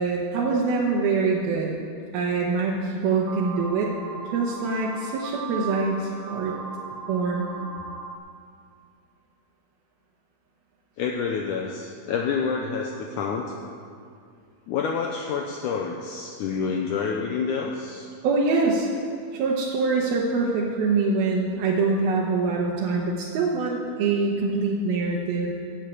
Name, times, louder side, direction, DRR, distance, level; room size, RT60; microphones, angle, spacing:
voice 1, 0.0-1.7 2.1-3.9 4.3-6.5 7.1-7.5 18.2-18.9 19.3-25.5, right 4 dB, 85° right, -3 dB, 2.9 m, -24 dB
sound 1, 3.1-8.2, right 5 dB, 70° right, 1.5 m, -37 dB
voice 2, 11.0-13.5 14.7-18.1, left 5 dB, 80° left, 1 dB, 1.9 m, -28 dB
11.5 x 7.4 x 8.4 m, 2.3 s
omnidirectional pair, 4.2 m